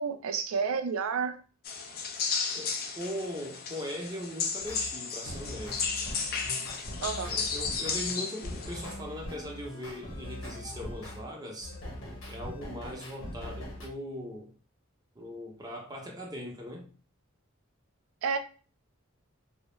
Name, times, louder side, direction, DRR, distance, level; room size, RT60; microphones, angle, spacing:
voice 1, 0.0-1.3 7.0-7.3 18.2-18.4, right 6 dB, 80° right, 8 dB, 0.4 m, -30 dB
sound 1, 1.6-8.9, left 5 dB, 45° left, 0.4 m, -34 dB
voice 2, 2.5-6.0 7.2-11.8 12.3-14.5 15.1-16.9, equal, 20° right, -1 dB, 0.6 m, -40 dB
sound 2, 4.6-4.9 5.3-11.2 11.6-13.9, left 1 dB, 60° left, 0.8 m, -41 dB
2.3 x 2.1 x 2.9 m, 0.38 s
head